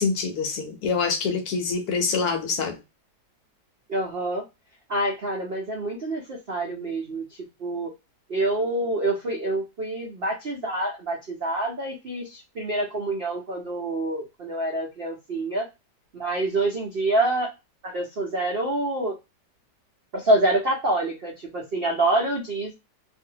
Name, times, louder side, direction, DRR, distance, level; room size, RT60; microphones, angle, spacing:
voice 1, 0.0-2.8, left 5 dB, 70° left, 1.0 m, -25 dB
voice 2, 3.9-4.4 4.9-7.2 7.6-7.9 8.3-15.7 16.1-17.5 17.8-19.1 20.1-22.7, right 2 dB, 65° right, 0.5 m, -26 dB
2.6 x 2.5 x 2.7 m
omnidirectional pair, 1.9 m